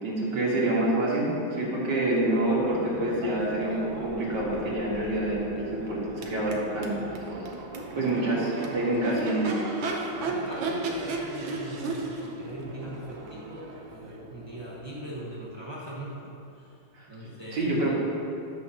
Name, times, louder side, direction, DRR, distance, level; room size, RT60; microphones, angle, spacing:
voice 1, 0.0-6.9 8.0-9.6 10.0-10.1 16.9-17.1 17.5-17.9, right 1 dB, 60° right, -5 dB, 2.2 m, -27 dB
Crowd / Race car auto racing / Accelerating revving vroom, 1.9-15.8, right 3 dB, 80° right, 1.6 m, -36 dB
voice 2, 7.9-8.8 9.1-9.4 9.9-17.9, right 1 dB, 20° right, -6 dB, 0.6 m, -41 dB
10.5 x 6.7 x 2.8 m, 2.7 s
omnidirectional pair, 2.2 m